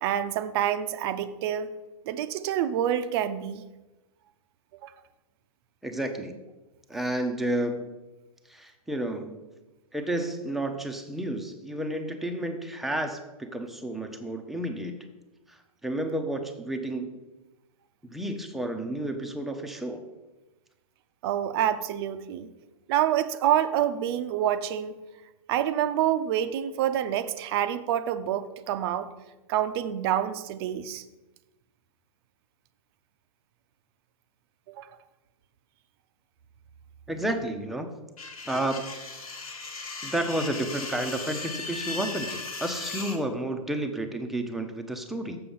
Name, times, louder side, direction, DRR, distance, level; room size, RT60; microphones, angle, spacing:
voice 1, 0.0-1.7 2.1-3.6 4.8-4.9 21.2-22.5 22.9-24.9 25.5-29.1 29.5-31.0 34.8-34.9, right 10 dB, 45° right, 11 dB, 0.6 m, -27 dB
voice 2, 5.8-6.4 6.9-7.9 8.5-9.4 9.9-15.0 15.5-17.2 18.0-20.0 37.1-37.9 38.2-38.8 40.0-45.4, right 1 dB, ahead, 4 dB, 0.7 m, -31 dB
sound 1, 38.2-43.2, left 3 dB, 85° left, 1.6 m, -37 dB
6.8 x 6.8 x 5.4 m, 1.1 s
hypercardioid pair, 130°, 18 cm